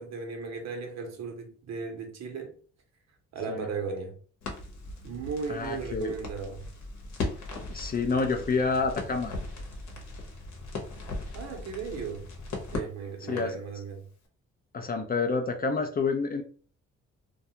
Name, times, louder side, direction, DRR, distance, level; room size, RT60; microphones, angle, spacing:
voice 1, 0.0-2.6 3.3-4.2 5.0-6.7 11.3-12.3 12.7-14.1, right 5 dB, 60° right, 0.7 m, -36 dB
Crackle, 4.4-13.6, left 2 dB, 65° left, 0.9 m, -38 dB
voice 2, 5.5-6.2 7.7-9.3 13.3-13.6 14.7-16.4, left 4 dB, 30° left, 0.4 m, -28 dB
2.4 x 2.3 x 2.7 m
cardioid pair, 90°, 30 cm